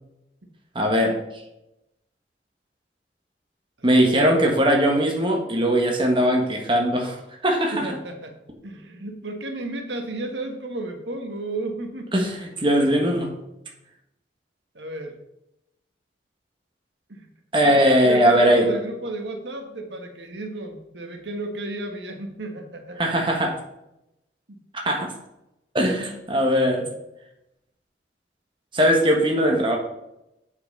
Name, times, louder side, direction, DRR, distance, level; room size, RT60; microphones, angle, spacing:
voice 1, 0.7-1.2 3.8-7.2 7.4-7.9 12.1-13.3 17.5-18.7 23.0-23.5 24.7-25.1 25.7-26.9 28.7-29.8, equal, 30° right, 1 dB, 1.4 m, -20 dB
voice 2, 3.8-4.5 7.7-8.3 8.6-12.1 14.7-15.2 17.1-17.3 18.0-23.0 24.5-24.6, right 2 dB, 85° right, 4 dB, 1.3 m, -33 dB
7.7 x 5.7 x 5.3 m, 0.88 s
head